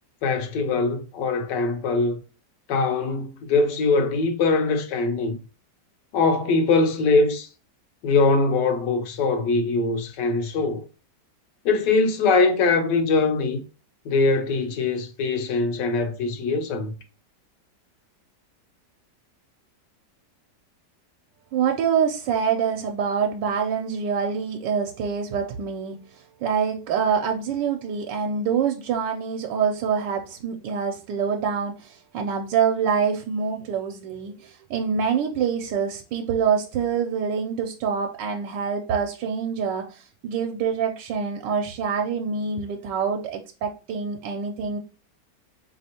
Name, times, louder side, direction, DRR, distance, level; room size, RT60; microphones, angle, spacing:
voice 1, 0.2-2.2 2.7-5.4 6.1-7.5 8.0-10.9 11.6-13.6 14.0-16.9, left 3 dB, 80° left, 1.3 m, -22 dB
voice 2, 21.5-44.8, right 6 dB, 85° right, 1.2 m, -26 dB
4.1 x 3.2 x 2.8 m
omnidirectional pair, 1.9 m